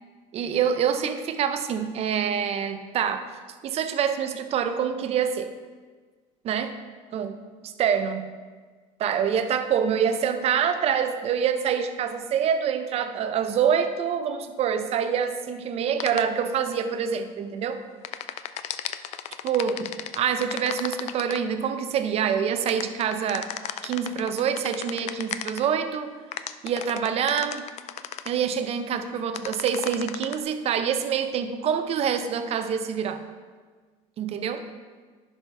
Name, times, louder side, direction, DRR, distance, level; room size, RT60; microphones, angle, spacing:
voice 1, 0.3-3.3 3.6-5.5 6.4-6.8 7.1-7.4 7.6-8.3 9.0-17.8 19.4-23.5 23.8-26.1 26.6-27.6 28.3-33.2 34.2-34.7, right 7 dB, 45° right, 9 dB, 0.6 m, -26 dB
sound 1, 16.0-16.2 18.0-21.4 22.7-25.7 26.3-28.3 29.3-30.4, left 11 dB, 50° left, 0.4 m, -34 dB
10.0 x 5.8 x 3.4 m, 1.5 s
cardioid pair, 115°, 14 cm